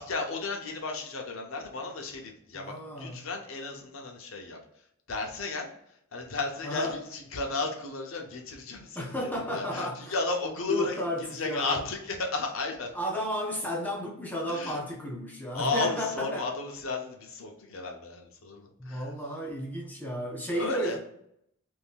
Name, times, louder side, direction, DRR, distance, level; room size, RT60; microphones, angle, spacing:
voice 1, 0.0-4.6 5.1-5.7 6.1-12.9 14.5-14.8 15.5-19.1 20.5-21.0, left 3 dB, 75° left, 0.7 m, -34 dB
voice 2, 2.5-3.2 6.6-7.0 8.9-10.1 10.7-11.8 12.9-16.5 18.8-21.0, equal, 10° left, 0.5 m, -33 dB
2.7 x 2.5 x 3.5 m
head